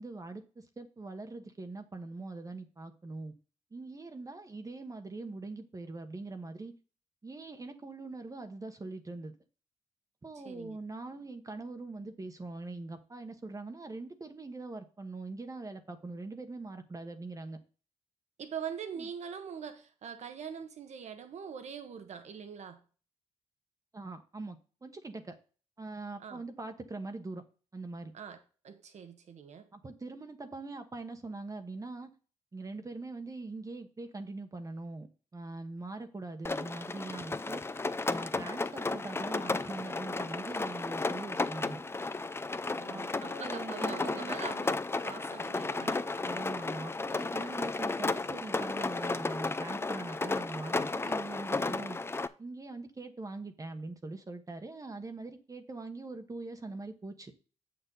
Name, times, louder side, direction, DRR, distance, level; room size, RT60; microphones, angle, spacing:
voice 1, 0.0-3.3 3.7-6.7 7.2-9.3 10.2-17.6 19.0-19.1 23.9-25.4 25.8-27.4 27.7-28.1 29.7-32.1 32.5-35.1 35.3-37.6 38.1-41.8 42.9-44.4 46.2-52.0 52.4-57.3, right 3 dB, 30° right, 1.2 m, -42 dB
voice 2, 10.3-10.8 18.4-22.8 26.2-26.4 28.1-29.7 42.7-44.8 45.0-46.1, right 7 dB, 75° right, 1.4 m, -43 dB
Rain, 36.4-52.3, left 3 dB, 20° left, 0.5 m, -34 dB
7.6 x 6.9 x 4.0 m
cardioid pair, 80°, 12 cm